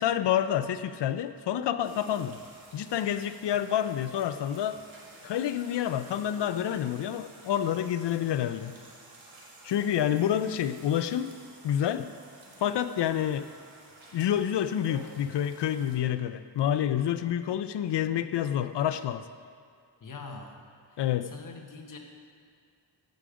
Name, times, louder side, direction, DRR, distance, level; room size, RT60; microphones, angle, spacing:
voice 1, 0.0-2.4 2.7-4.8 5.2-8.7 9.6-11.3 11.6-12.1 12.6-13.5 14.1-19.2 21.0-21.3, left 10 dB, 75° left, 11 dB, 0.5 m, -28 dB
sound 1, 1.8-16.0, right 2 dB, 55° right, 1.6 m, -51 dB
voice 2, 20.0-20.6 20.9-22.0, left 4 dB, 45° left, 2 dB, 1.1 m, -44 dB
14.5 x 5.0 x 5.1 m, 2.4 s
wide cardioid pair, 145°, 42 cm